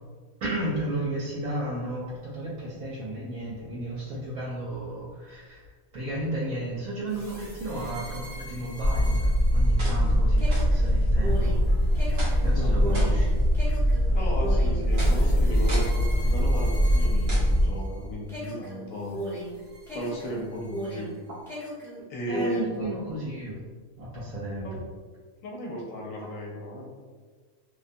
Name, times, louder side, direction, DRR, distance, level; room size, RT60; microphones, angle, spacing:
voice 1, 0.4-5.6 5.9-11.6 12.4-13.4 21.3-21.4 22.3-23.6 24.0-24.8, right 1 dB, 80° right, -7 dB, 1.0 m, -33 dB
sound 1, 7.1-18.0 18.3-21.2 21.5-22.8, right 1 dB, ahead, 0.6 m, -38 dB
sound 2, 8.8-17.7, equal, 50° right, 0.7 m, -22 dB
voice 2, 12.5-13.1 14.1-19.2 19.9-21.2 22.1-22.9 24.6-24.8 25.4-26.9, left 1 dB, 75° left, -3 dB, 1.0 m, -35 dB
2.5 x 2.2 x 2.5 m, 1.5 s
omnidirectional pair, 1.4 m